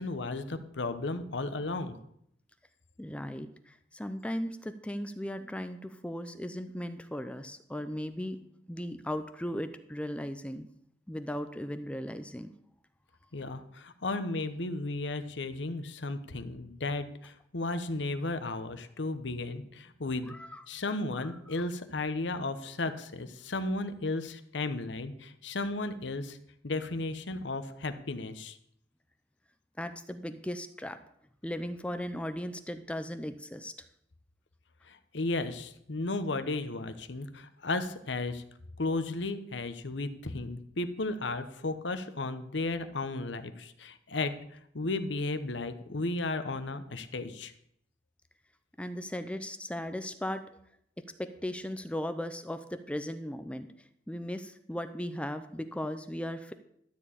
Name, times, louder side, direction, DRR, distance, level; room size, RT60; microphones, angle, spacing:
voice 1, 0.0-2.0 13.3-20.3 20.7-26.4 26.6-28.6 34.9-38.4 38.8-44.3 44.7-47.5, left 2 dB, 70° left, 10 dB, 1.0 m, -34 dB
voice 2, 3.0-8.4 8.7-10.7 11.1-12.5 20.3-20.6 29.8-31.0 31.4-33.7 48.8-50.4 51.2-53.7 54.1-56.5, equal, 5° left, 9 dB, 0.5 m, -37 dB
13.0 x 4.5 x 8.5 m, 0.71 s
head